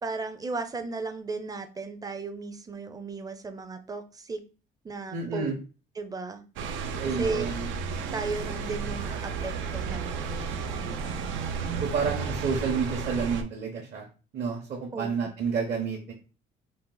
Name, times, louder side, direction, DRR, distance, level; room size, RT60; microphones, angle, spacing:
voice 1, 0.0-4.4 4.8-5.5 6.0-6.4 7.2-7.5 8.1-11.4 14.9-15.1, right 3 dB, 20° right, 8 dB, 0.5 m, -35 dB
voice 2, 5.1-5.5 7.0-7.7 11.8-14.0 14.3-16.1, right 5 dB, 55° right, -1 dB, 1.0 m, -30 dB
sound 1, 6.6-13.4, right 5 dB, 85° right, 0.6 m, -33 dB
4.0 x 2.4 x 3.8 m, 0.35 s
cardioid pair, 120°, 20 cm